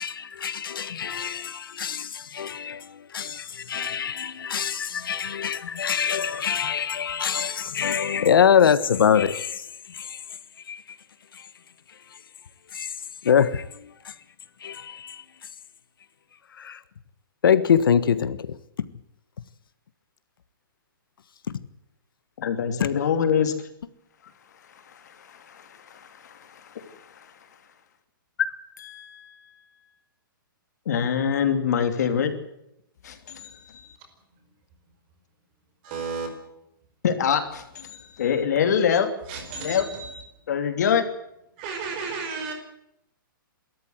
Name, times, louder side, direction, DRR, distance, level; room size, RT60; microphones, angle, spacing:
voice 1, 0.0-9.6 9.9-10.2 10.7-10.8 12.7-12.9 13.2-14.1 14.6-15.2 16.6-16.8 17.4-18.6, left 8 dB, 75° left, 1.4 m, -24 dB
voice 2, 22.4-23.5 24.7-27.4 28.8-29.5 30.8-32.3 33.0-34.0 37.0-39.1 39.6-39.9 40.5-41.1, left 7 dB, 50° left, 2.9 m, -26 dB
voice 3, 35.8-36.3 39.3-40.2 41.6-42.5, right 5 dB, 25° right, 5.0 m, -33 dB
27.0 x 14.0 x 7.9 m
hypercardioid pair, 175°, 12 cm